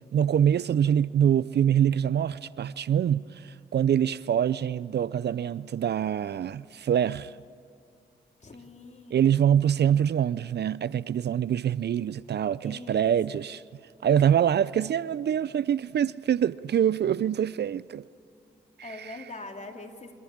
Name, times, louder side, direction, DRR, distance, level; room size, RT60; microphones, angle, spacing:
voice 1, 0.1-7.3 9.1-13.6 14.0-18.0 18.8-19.2, right 9 dB, 60° right, 0.5 m, -25 dB
voice 2, 8.4-9.3 12.6-13.4 18.8-20.1, left 2 dB, 35° left, 3.6 m, -43 dB
27.5 x 15.0 x 8.7 m
supercardioid pair, 40°, 20 cm